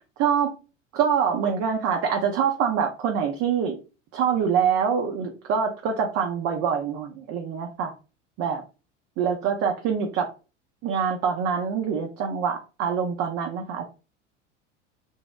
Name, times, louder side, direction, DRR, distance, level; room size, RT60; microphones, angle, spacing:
voice 1, 0.2-0.5 0.9-3.8 4.1-7.9 8.4-8.6 9.2-10.3 10.8-13.9, right 7 dB, 40° right, 3 dB, 0.6 m, -25 dB
2.9 x 2.7 x 2.3 m, 0.32 s
figure-of-eight pair, 80°, 37 cm